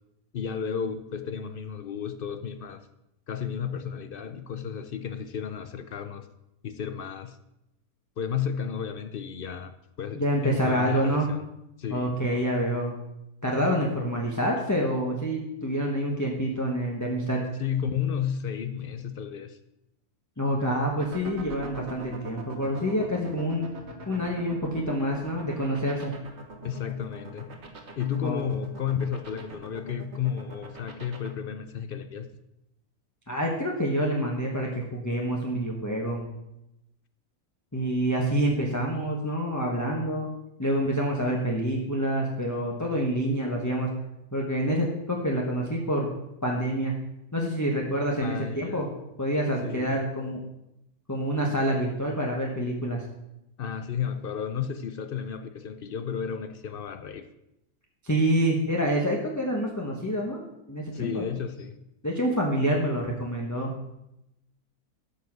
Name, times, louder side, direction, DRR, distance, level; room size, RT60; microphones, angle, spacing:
voice 1, 0.3-2.9 3.3-6.3 6.6-7.4 8.2-11.4 11.8-12.2 17.6-19.6 26.6-27.5 28.0-32.3 48.2-48.9 49.6-50.1 53.6-57.3 60.9-61.8, left 7 dB, 65° left, 10 dB, 0.5 m, -32 dB
voice 2, 10.1-11.3 11.9-13.0 13.4-17.4 20.4-23.7 24.1-26.1 28.2-28.4 33.3-36.3 37.7-40.3 40.6-43.9 44.3-46.1 46.4-47.0 47.3-48.9 49.2-50.4 51.1-53.0 58.0-60.4 60.7-61.2 62.0-63.8, equal, 10° left, -2 dB, 1.2 m, -27 dB
sound 1, 20.9-31.3, right 3 dB, 45° right, 1.6 m, -42 dB
13.0 x 5.7 x 6.1 m, 0.87 s
omnidirectional pair, 1.7 m